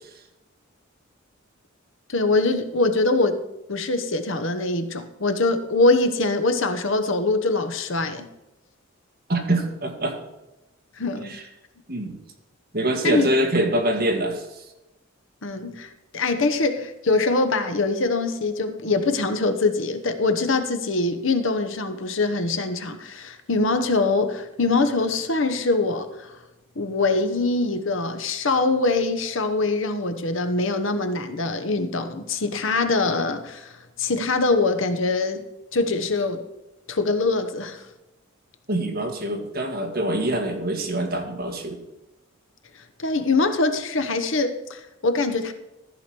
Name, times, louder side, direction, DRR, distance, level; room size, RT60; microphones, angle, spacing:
voice 1, 2.1-3.4 3.7-8.3 11.0-11.3 13.0-13.3 15.4-26.3 26.8-33.7 34.0-35.4 35.7-36.4 36.9-37.8 43.0-45.5, left 3 dB, 65° left, 1.0 m, -23 dB
voice 2, 9.3-10.2 11.2-11.4 11.9-12.2 12.7-14.6 38.7-41.8, right 1 dB, 45° right, 1.9 m, -24 dB
14.0 x 5.0 x 6.0 m
head